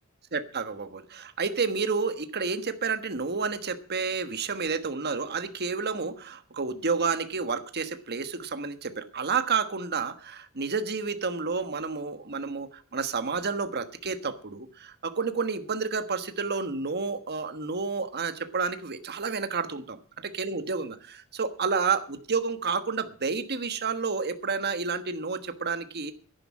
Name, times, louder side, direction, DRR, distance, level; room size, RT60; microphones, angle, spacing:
voice 1, 0.3-20.0 20.2-26.1, right 5 dB, 50° right, 1.4 m, -30 dB
11.0 x 11.0 x 7.3 m
head